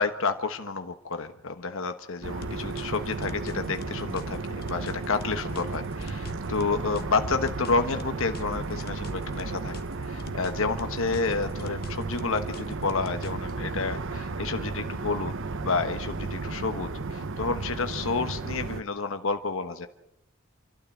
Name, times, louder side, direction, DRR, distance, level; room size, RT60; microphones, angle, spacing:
voice 1, 0.0-4.4 4.7-9.7 10.1-15.3 15.6-19.9, left 4 dB, 65° left, 7 dB, 1.2 m, -30 dB
sound 1, 2.2-18.8, right 3 dB, 60° right, 0.9 m, -34 dB
sound 2, 2.4-7.0 7.5-10.5 10.8-13.5, left 3 dB, 45° left, 1.3 m, -45 dB
28.0 x 12.5 x 8.4 m, 0.83 s
head